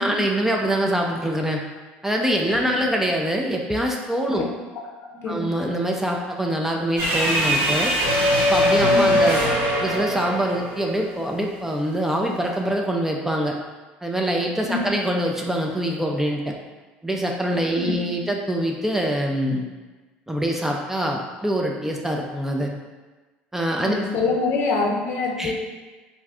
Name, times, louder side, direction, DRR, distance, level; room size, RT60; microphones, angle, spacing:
voice 1, 0.0-1.6 2.0-4.5 5.3-7.9 8.4-9.4 9.8-13.6 14.0-16.5 17.0-19.6 20.3-22.7 23.5-23.9 25.4-25.5, right 1 dB, 5° right, 0 dB, 0.4 m, -24 dB
voice 2, 2.4-2.9 4.4-4.5 5.1-5.5 8.9-9.3 14.7-14.9 17.7-18.2 23.8-25.5, left 3 dB, 55° left, 0 dB, 0.6 m, -26 dB
sound 1, 7.0-11.3, equal, 75° right, 1.4 m, -21 dB
2.6 x 2.3 x 3.4 m, 1.3 s
hypercardioid pair, 80°, 5 cm